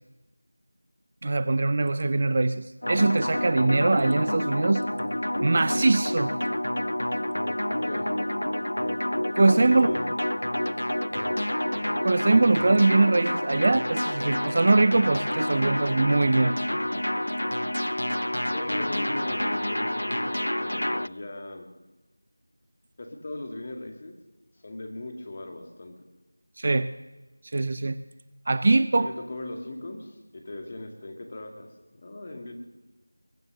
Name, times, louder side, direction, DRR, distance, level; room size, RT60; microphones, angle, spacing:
voice 1, 1.2-4.8 5.4-6.3 9.3-9.9 12.0-16.5 26.6-26.9 27.5-28.0 28.5-29.1, right 2 dB, 30° right, 15 dB, 0.4 m, -22 dB
sound 1, 2.8-21.1, left 1 dB, 75° left, 0.4 m, -28 dB
voice 2, 9.6-10.0 18.5-21.7 23.0-24.2 24.6-25.9 29.0-32.5, left 2 dB, 30° left, 4 dB, 2.1 m, -38 dB
22.0 x 9.5 x 6.7 m, 1.1 s
figure-of-eight pair, 170°, 0 cm